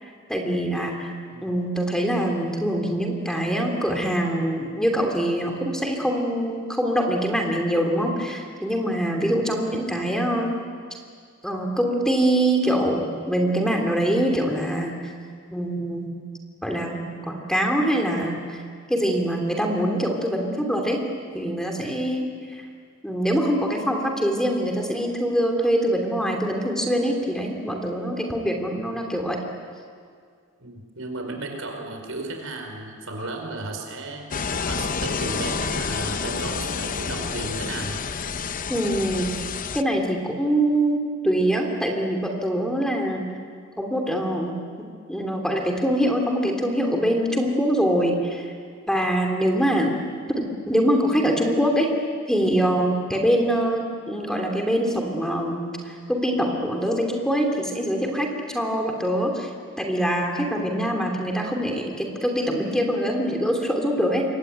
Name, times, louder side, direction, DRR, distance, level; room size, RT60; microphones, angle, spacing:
voice 1, 0.0-1.1 1.4-10.6 11.4-15.1 15.5-16.1 16.6-18.6 18.9-21.0 21.3-22.7 23.0-29.4 38.7-39.3 39.7-43.3 43.8-44.6 45.1-48.5 48.9-49.9 50.3-51.9 52.3-59.5 59.8-64.3, equal, 5° left, 2 dB, 2.9 m, -24 dB
voice 2, 30.6-34.3 34.6-38.0, right 2 dB, 75° right, 4 dB, 4.9 m, -34 dB
sound 1, 34.3-39.8, left 5 dB, 40° left, 0.7 m, -29 dB
26.5 x 23.0 x 9.2 m, 2.1 s
head